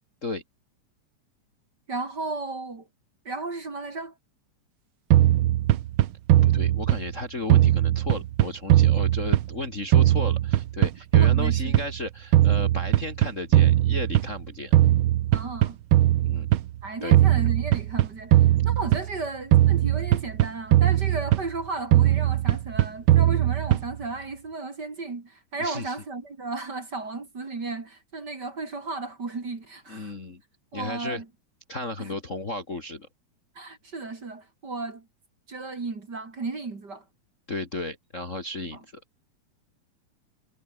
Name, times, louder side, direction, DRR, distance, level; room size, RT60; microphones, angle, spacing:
voice 1, 1.9-2.9 3.2-4.1 11.2-11.7 15.3-15.8 16.8-30.1 30.7-31.3 32.0-32.1 33.5-35.1 35.5-37.0 38.7-38.8, right 3 dB, 35° right, 3.3 m, -34 dB
sound 1, 5.1-7.2 7.5-9.7 9.9-12.0 12.3-14.4 14.7-16.7 17.1-19.2 19.5-21.6 21.9-24.0, right 13 dB, 85° right, 1.1 m, -20 dB
voice 2, 6.4-14.7 16.2-16.5 17.0-17.2 25.6-25.9 29.9-30.4 30.7-31.2 31.7-33.1 37.5-39.0, left 2 dB, 25° left, 2.2 m, -34 dB
omnidirectional pair, 3.5 m